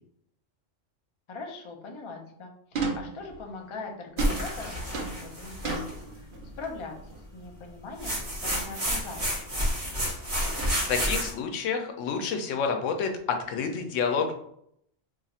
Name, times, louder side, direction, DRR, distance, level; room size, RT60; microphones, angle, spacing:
voice 1, 1.3-6.3 6.6-9.5, left 3 dB, 40° left, 2 dB, 0.4 m, -41 dB
sound 1, 2.7-3.6 4.2-6.7 7.0-7.3 8.4-9.0 9.3-9.7 10.6-11.3, right 4 dB, 55° right, 0.7 m, -35 dB
sound 2, 4.2-6.0 8.0-11.3, equal, 30° right, 1.1 m, -30 dB
voice 2, 10.9-14.3, left 5 dB, 90° left, 4 dB, 1.0 m, -29 dB
2.7 x 2.4 x 4.1 m, 0.71 s
omnidirectional pair, 1.3 m